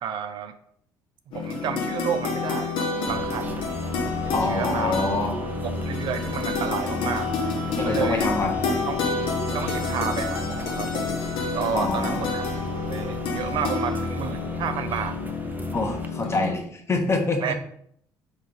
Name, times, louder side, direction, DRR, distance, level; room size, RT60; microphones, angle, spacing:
voice 1, 0.0-0.5 1.3-3.8 4.2-5.0 5.6-7.3 7.7-8.3 8.9-9.0 9.5-11.1 11.5-12.6 12.9-15.2 17.4-17.5, right 7 dB, 55° right, 9 dB, 0.4 m, -31 dB
sound 1, 1.3-16.5, left 4 dB, 65° left, 0.9 m, -29 dB
sound 2, 3.1-16.1, right 1 dB, 20° right, 0.6 m, -35 dB
voice 2, 4.3-5.3 7.8-8.6 11.7-12.2 15.7-17.5, left 3 dB, 30° left, 3 dB, 1.0 m, -26 dB
3.7 x 3.1 x 3.8 m, 0.66 s
hypercardioid pair, 65°, 9 cm